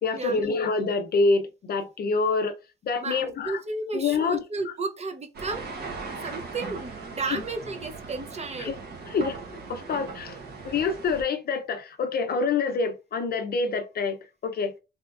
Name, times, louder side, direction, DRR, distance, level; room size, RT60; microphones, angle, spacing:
voice 1, 0.0-2.5 2.8-3.6 3.9-4.4 7.3-7.4 8.6-8.8 9.1-10.4 10.6-14.7, left 4 dB, 50° left, 0.7 m, -26 dB
voice 2, 3.0-5.7 6.2-8.7, right 3 dB, 35° right, 0.8 m, -33 dB
sound 1, 5.3-11.2, right 4 dB, 55° right, 1.1 m, -39 dB
3.4 x 2.9 x 2.5 m
cardioid pair, 90°, 20 cm